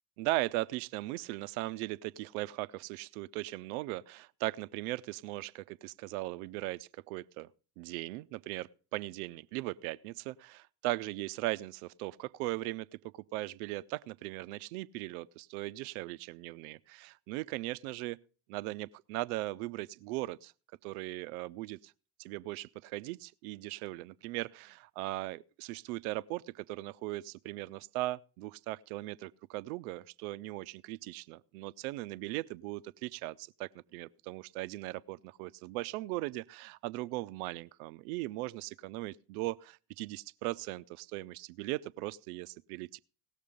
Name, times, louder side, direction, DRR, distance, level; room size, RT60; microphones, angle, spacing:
voice 1, 0.2-7.5 7.8-18.2 18.5-20.5 20.8-21.9 22.2-43.0, right 18 dB, 65° right, 0.6 m, -38 dB
18.0 x 6.6 x 5.1 m
figure-of-eight pair, 55°, 48 cm